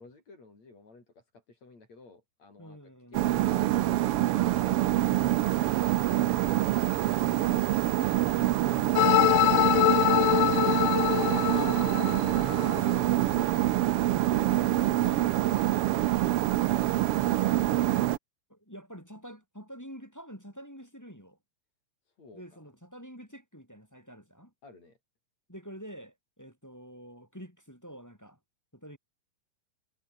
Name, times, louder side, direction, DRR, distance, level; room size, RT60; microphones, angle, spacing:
voice 1, 0.0-5.3 5.6-11.1 17.5-17.7 22.1-22.6 24.6-25.0, left 3 dB, 60° left, 8.1 m, -52 dB
voice 2, 2.6-3.2 11.3-13.9 18.5-21.4 22.3-24.5 25.5-28.4 28.7-29.0, equal, 5° left, 4.1 m, -47 dB
sound 1, 3.1-18.2, right 14 dB, 80° right, 1.2 m, -26 dB
sound 2, 9.0-13.0, left 20 dB, 85° left, 2.0 m, -25 dB
omnidirectional pair, 3.5 m